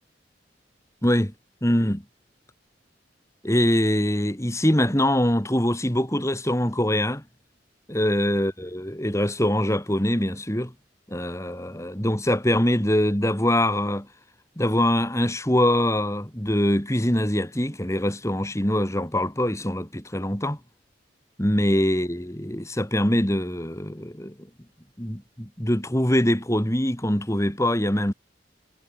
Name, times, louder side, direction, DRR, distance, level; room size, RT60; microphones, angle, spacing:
voice 1, 1.0-1.3 1.6-2.0 3.4-7.2 7.9-10.7 11.1-14.1 14.6-20.6 21.4-24.3 25.0-28.1, left 1 dB, 15° left, 3.6 m, -23 dB
head